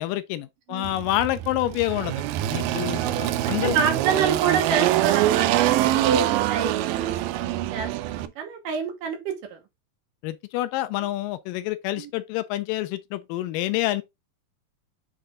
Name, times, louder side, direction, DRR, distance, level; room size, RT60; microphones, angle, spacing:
voice 1, 0.0-2.2 2.5-3.8 10.2-14.0, left 15 dB, 80° left, 2.1 m, -27 dB
Engine, 0.8-8.3, right 14 dB, 90° right, 2.4 m, -24 dB
voice 2, 3.0-9.6 12.0-12.1, right 7 dB, 70° right, 2.9 m, -28 dB
7.8 x 3.4 x 3.7 m
omnidirectional pair, 4.1 m